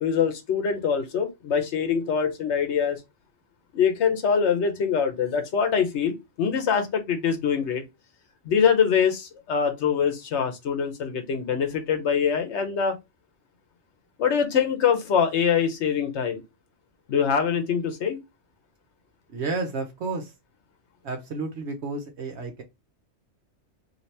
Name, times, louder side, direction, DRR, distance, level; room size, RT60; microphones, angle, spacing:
voice 1, 0.0-3.0 3.7-7.8 8.4-13.0 14.2-16.4 17.1-18.2, left 7 dB, 70° left, 6 dB, 1.0 m, -24 dB
voice 2, 19.3-20.3 21.0-22.6, right 3 dB, 70° right, 4 dB, 1.0 m, -31 dB
2.8 x 2.7 x 3.2 m, 0.22 s
omnidirectional pair, 1.2 m